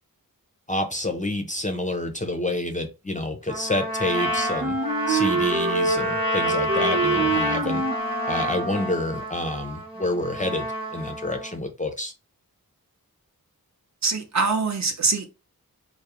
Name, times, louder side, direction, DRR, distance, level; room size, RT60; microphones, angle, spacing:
voice 1, 0.7-4.8 5.1-7.8 8.3-12.1, left 1 dB, 20° left, 0.4 m, -28 dB
Trumpet, 3.5-11.5, equal, 15° right, 1.0 m, -29 dB
Wind instrument woodwind instrument, 4.1-9.1, right 3 dB, 75° right, 0.9 m, -26 dB
voice 2, 14.0-15.3, right 4 dB, 50° right, 0.6 m, -23 dB
2.3 x 2.0 x 2.8 m
wide cardioid pair, 50°, 37 cm